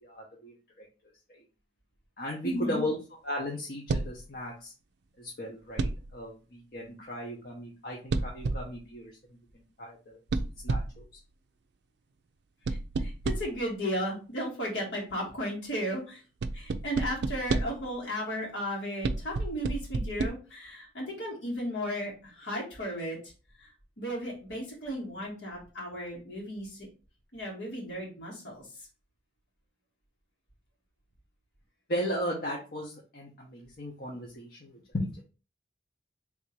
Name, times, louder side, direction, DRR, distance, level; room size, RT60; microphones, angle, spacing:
voice 1, 0.0-0.8 1.3-1.4 2.2-2.9 3.2-4.7 5.2-9.1 9.5-10.2 10.6-11.1 31.9-35.2, equal, 55° left, -2 dB, 0.9 m, -36 dB
voice 2, 2.4-2.8 12.7-16.2 16.5-23.2 23.6-23.7 24.0-26.9 27.3-28.9, equal, 90° left, -3 dB, 2.2 m, -35 dB
sound 1, 3.9-4.2 5.8-6.2 8.1-8.8 10.3-11.1 12.6-13.6 16.4-17.9 19.0-20.3, right 3 dB, 65° right, 0.4 m, -30 dB
3.5 x 2.7 x 4.5 m, 0.33 s
head